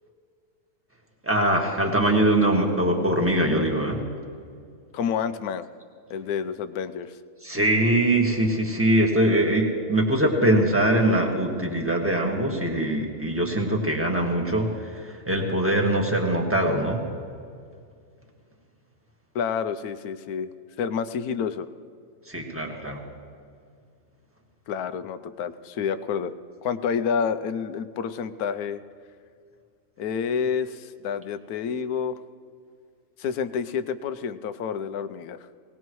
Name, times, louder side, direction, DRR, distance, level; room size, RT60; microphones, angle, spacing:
voice 1, 1.2-4.1 7.4-17.0 22.2-23.0, right 1 dB, 10° right, 0 dB, 1.6 m, -22 dB
voice 2, 4.9-5.6 6.1-7.2 19.3-20.5 20.8-21.7 24.7-26.3 26.6-28.8 30.0-32.2 33.2-35.4, left 7 dB, 75° left, 12 dB, 1.1 m, -29 dB
19.5 x 19.0 x 3.1 m, 2.2 s
omnidirectional pair, 1.6 m